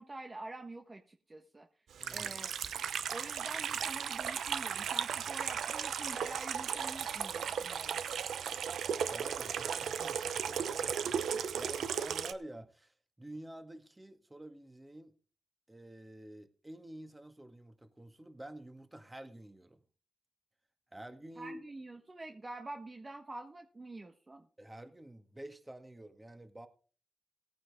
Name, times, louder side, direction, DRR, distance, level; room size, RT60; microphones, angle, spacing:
voice 1, 0.0-1.7 2.1-2.5 3.1-8.0 21.4-24.5, right 2 dB, 35° right, 4 dB, 1.3 m, -47 dB
voice 2, 2.0-2.3 9.1-15.2 15.7-19.8 20.9-21.6 24.6-26.7, right 1 dB, 20° right, 8 dB, 1.9 m, -49 dB
Water tap faucet / Sink (filling or washing), 2.0-12.3, right 8 dB, 85° right, 0.6 m, -36 dB
17.5 x 9.1 x 3.6 m, 0.38 s
supercardioid pair, 45°, 0 cm